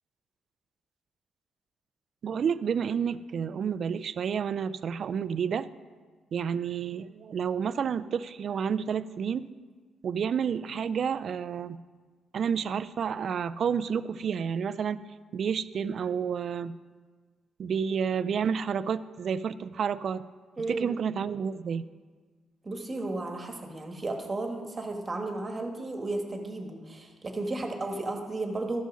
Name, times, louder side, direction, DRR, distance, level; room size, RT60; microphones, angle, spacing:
voice 1, 2.2-5.7 6.3-9.5 10.0-11.8 12.3-15.0 15.3-16.7 17.6-20.2 20.7-21.9, right 7 dB, 55° right, 15 dB, 0.4 m, -30 dB
voice 2, 20.6-20.9 22.6-28.8, right 2 dB, 25° right, 3 dB, 1.4 m, -34 dB
13.5 x 5.5 x 6.2 m, 1.5 s
cardioid pair, 105°, 0 cm